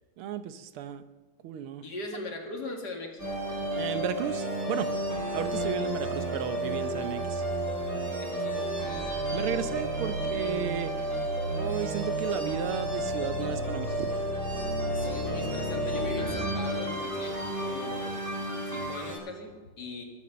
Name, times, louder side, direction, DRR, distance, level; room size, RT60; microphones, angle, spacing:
voice 1, 0.2-1.0 1.4-1.8 3.7-4.9 5.3-7.4 9.3-14.3, right 9 dB, 80° right, 12 dB, 1.7 m, -34 dB
voice 2, 1.8-3.3 8.1-8.6 14.9-18.3 18.7-20.0, left 2 dB, 50° left, 3 dB, 2.6 m, -39 dB
sound 1, 3.2-19.2, right 1 dB, 25° right, 6.1 m, -31 dB
21.5 x 8.5 x 6.7 m, 1.4 s
omnidirectional pair, 2.4 m